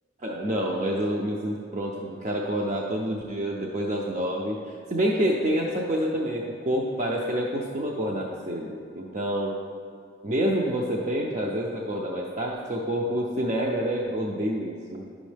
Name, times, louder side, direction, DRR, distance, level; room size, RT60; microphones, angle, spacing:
voice 1, 0.2-9.6 10.2-15.1, equal, 40° right, -2 dB, 0.5 m, -28 dB
9.7 x 6.2 x 3.3 m, 2.4 s
head